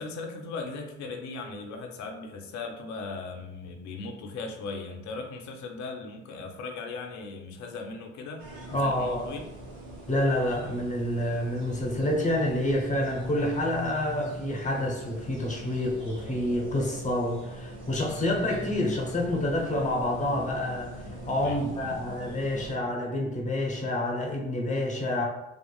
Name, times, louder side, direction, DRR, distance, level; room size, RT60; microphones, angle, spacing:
voice 1, 0.0-9.4 21.4-22.0, left 3 dB, 55° left, 2 dB, 0.6 m, -38 dB
sound 1, 8.4-22.8, right 1 dB, 70° right, 1.1 m, -41 dB
voice 2, 8.7-9.3 10.1-25.3, left 1 dB, 20° left, 0 dB, 0.8 m, -28 dB
2.9 x 2.4 x 2.2 m, 0.96 s
figure-of-eight pair, 40°, 36 cm